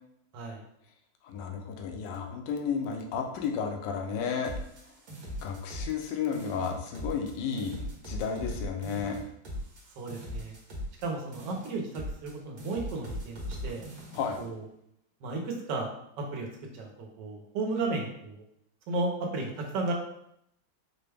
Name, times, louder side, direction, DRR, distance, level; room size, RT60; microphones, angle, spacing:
voice 1, 1.2-4.5 5.4-7.7 8.0-9.2 14.1-14.4, left 6 dB, 75° left, 2 dB, 1.2 m, -32 dB
sound 1, 4.4-6.1 6.3-7.3 7.6-11.1 11.3-12.3 12.6-14.5, equal, 55° right, 1.4 m, -39 dB
voice 2, 10.0-10.5 11.0-13.8 14.4-14.6 15.2-15.9 16.2-16.5 16.7-18.4 18.9-19.9, right 3 dB, 75° right, 1 dB, 1.4 m, -34 dB
4.7 x 2.2 x 3.3 m, 0.74 s
omnidirectional pair, 2.0 m